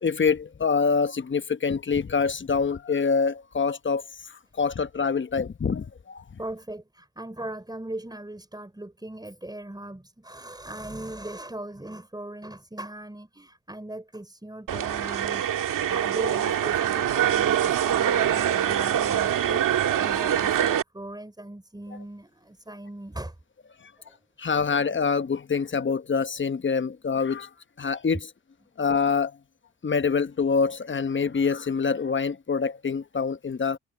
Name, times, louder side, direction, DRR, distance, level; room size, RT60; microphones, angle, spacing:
voice 1, 0.0-6.4 23.8-23.9 24.4-27.5 27.8-28.3 28.8-29.4 29.8-33.8, left 5 dB, 35° left, 1.1 m, -25 dB
voice 2, 6.4-23.4 24.0-24.2, right 1 dB, 15° right, 4.6 m, -39 dB
sound 1, 14.7-20.8, right 10 dB, 80° right, 1.9 m, -24 dB
cardioid pair, 60°, 32 cm